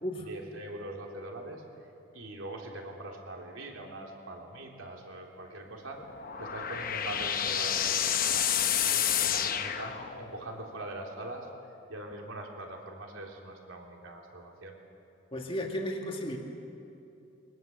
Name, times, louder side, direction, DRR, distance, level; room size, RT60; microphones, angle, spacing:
voice 1, 0.3-1.6 2.1-6.0 6.4-8.4 8.9-11.5 11.9-14.8, right 2 dB, 75° right, 0 dB, 3.4 m, -42 dB
sound 1, 5.9-10.5, left 9 dB, 45° left, 1.0 m, -29 dB
voice 2, 15.3-16.4, equal, 25° left, 1 dB, 2.0 m, -34 dB
23.5 x 19.5 x 7.8 m, 2.8 s
head